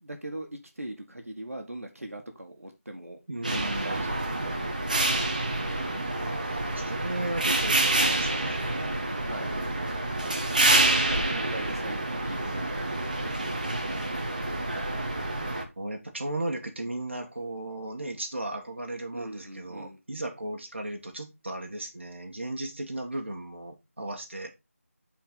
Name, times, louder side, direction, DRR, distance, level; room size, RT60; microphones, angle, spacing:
voice 1, 0.0-3.2 3.8-4.7 9.2-9.6 10.8-13.6 13.9-14.5 19.1-20.0, right 1 dB, 70° right, 1.7 m, -41 dB
voice 2, 3.3-4.2 6.2-8.6 11.2-11.6 15.8-24.5, right 1 dB, 50° right, 1.7 m, -36 dB
sound 1, 3.4-15.6, right 2 dB, 35° right, 1.1 m, -27 dB
8.3 x 4.6 x 3.9 m
figure-of-eight pair, 170°, 8 cm